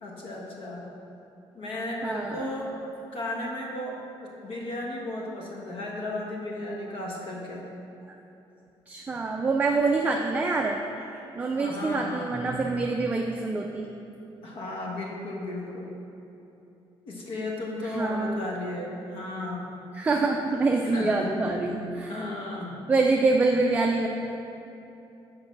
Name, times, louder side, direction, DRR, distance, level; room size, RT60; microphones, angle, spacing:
voice 1, 0.0-0.9 1.5-2.8 3.1-7.6 11.6-12.3 14.4-15.9 17.0-19.6 20.9-21.4 22.0-22.7, left 1 dB, 65° left, -1 dB, 1.3 m, -34 dB
voice 2, 2.0-2.5 8.9-10.8 11.4-13.9 17.8-18.4 19.9-22.2 22.9-24.1, right 3 dB, 15° right, 1 dB, 0.3 m, -25 dB
6.4 x 4.8 x 5.9 m, 2.9 s
cardioid pair, 165°, 10 cm